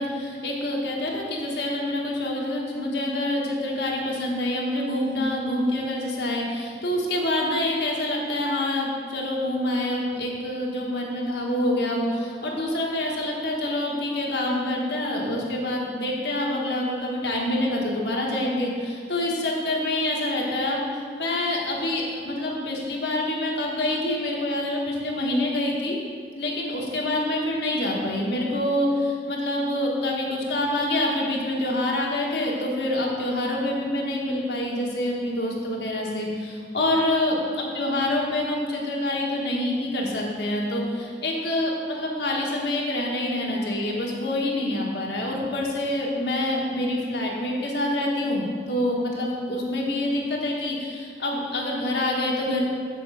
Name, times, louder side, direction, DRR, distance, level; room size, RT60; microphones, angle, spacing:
voice 1, 0.0-26.0 26.3-52.6, left 1 dB, 75° left, -2 dB, 1.4 m, -26 dB
6.9 x 4.6 x 6.9 m, 2.1 s
head